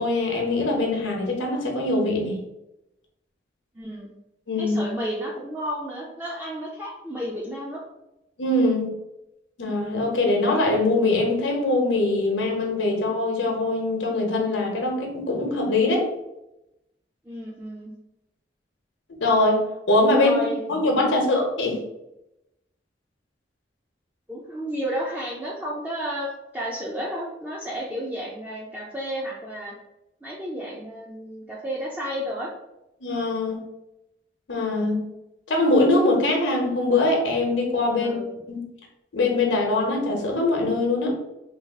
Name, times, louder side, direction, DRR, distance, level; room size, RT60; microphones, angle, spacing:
voice 1, 0.0-2.4 4.5-4.8 8.4-8.9 9.6-16.1 19.2-21.8 33.0-33.6 34.5-35.1 35.5-38.2 38.5-38.6 39.1-41.1, left 2 dB, 85° left, 1 dB, 0.8 m, -22 dB
voice 2, 3.7-4.1 4.6-7.8 17.2-17.9 20.1-21.2 24.3-29.7 30.2-32.5 37.9-38.3, equal, 10° right, -4 dB, 0.4 m, -32 dB
3.3 x 2.4 x 3.4 m, 0.90 s
head